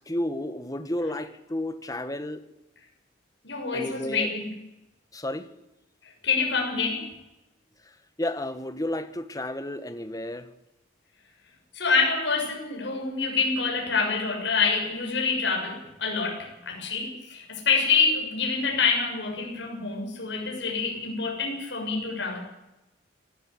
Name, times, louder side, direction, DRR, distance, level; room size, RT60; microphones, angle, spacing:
voice 1, 0.1-2.4 3.7-4.3 5.1-5.5 8.2-10.5, left 1 dB, 20° left, 10 dB, 1.6 m, -31 dB
voice 2, 3.4-4.6 6.0-7.1 11.7-22.4, left 4 dB, 70° left, 0 dB, 7.3 m, -26 dB
25.0 x 16.5 x 8.6 m, 0.95 s
head